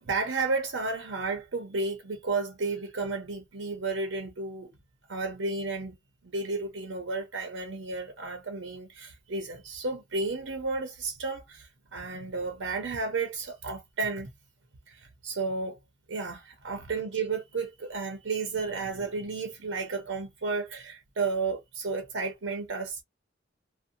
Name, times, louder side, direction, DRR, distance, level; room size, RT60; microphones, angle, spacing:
voice 1, 0.0-4.7 5.1-5.9 6.2-14.3 14.9-15.8 16.1-23.0, right 3 dB, 75° right, 0.7 m, -32 dB
2.6 x 2.1 x 2.5 m
head